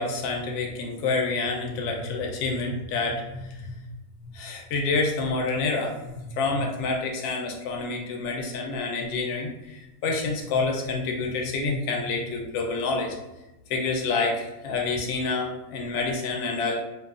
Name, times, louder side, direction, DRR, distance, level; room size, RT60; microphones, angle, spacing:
voice 1, 0.0-3.8 4.2-13.2 13.7-16.8, left 3 dB, 70° left, 1 dB, 0.8 m, -28 dB
2.6 x 2.3 x 2.4 m, 0.99 s
omnidirectional pair, 1.5 m